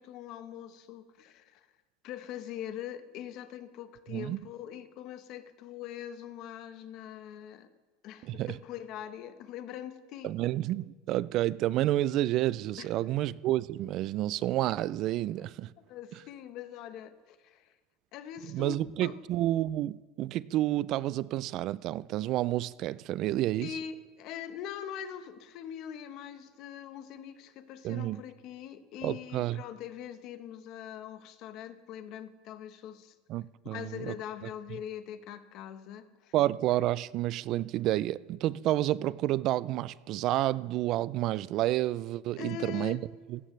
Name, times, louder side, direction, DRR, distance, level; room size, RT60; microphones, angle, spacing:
voice 1, 0.0-1.7 2.0-7.7 8.0-10.3 12.8-12.9 15.9-17.7 18.1-18.8 19.0-19.1 23.6-33.1 33.7-36.3 42.4-43.0, left 10 dB, 45° left, 1.0 m, -42 dB
voice 2, 8.2-8.6 10.2-15.7 18.5-23.8 27.8-28.2 29.0-29.6 33.3-34.1 36.3-43.4, right 14 dB, 40° right, 0.3 m, -30 dB
19.5 x 16.0 x 3.2 m
cardioid pair, 165°, 0 cm